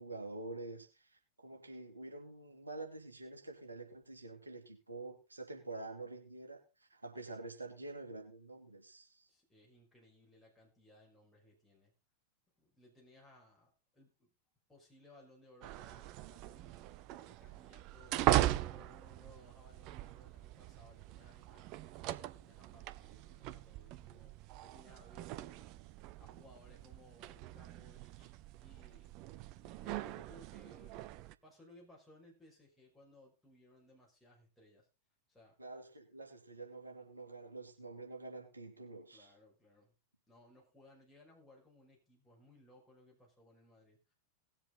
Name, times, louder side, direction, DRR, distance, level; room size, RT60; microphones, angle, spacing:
voice 1, 0.0-9.3 35.6-39.3, right 2 dB, 80° right, 2 dB, 2.8 m, -47 dB
voice 2, 9.3-11.9 12.6-14.3 14.7-16.8 17.1-18.3 18.6-25.8 26.2-29.1 29.6-31.1 31.4-34.9 35.3-35.6 39.1-39.9 40.3-44.1, left 1 dB, ahead, -4 dB, 5.7 m, -63 dB
sound 1, 15.6-31.3, right 14 dB, 40° right, 0.7 m, -40 dB
19.0 x 7.5 x 3.9 m, 0.29 s
figure-of-eight pair, 90°, 0 cm